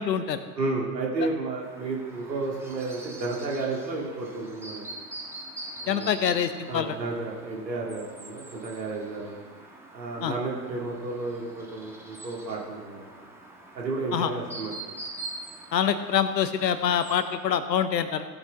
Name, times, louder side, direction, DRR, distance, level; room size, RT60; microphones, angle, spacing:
voice 1, 0.0-0.4 5.9-6.9 10.2-10.3 14.1-14.3 15.7-18.3, left 8 dB, 80° left, 11 dB, 0.9 m, -25 dB
voice 2, 0.5-4.8 5.8-6.2 6.7-9.4 9.9-13.1 13.7-14.8, right 3 dB, 85° right, -2 dB, 2.4 m, -32 dB
Chirp tweet, 1.6-17.3, right 2 dB, 5° right, 1.7 m, -44 dB
16.5 x 8.0 x 3.6 m, 1.5 s
figure-of-eight pair, 85°, 50 cm